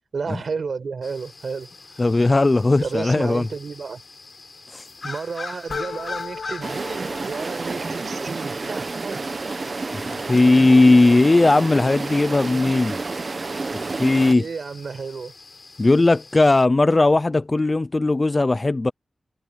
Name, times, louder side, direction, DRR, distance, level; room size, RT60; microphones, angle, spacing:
voice 1, 0.1-2.0 2.8-4.0 5.0-9.2 14.3-15.3, right 5 dB, 60° right, 4.6 m, -32 dB
sound 1, 1.0-16.7, left 4 dB, 45° left, 5.0 m, -42 dB
voice 2, 2.0-3.5 4.7-4.8 9.9-13.0 13.7-14.5 15.8-18.9, left 2 dB, 25° left, 0.3 m, -17 dB
sound 2, 5.7-8.6, left 5 dB, 70° left, 2.1 m, -37 dB
sound 3, 6.6-14.4, right 3 dB, 40° right, 1.1 m, -30 dB
wide cardioid pair, 140°, 0 cm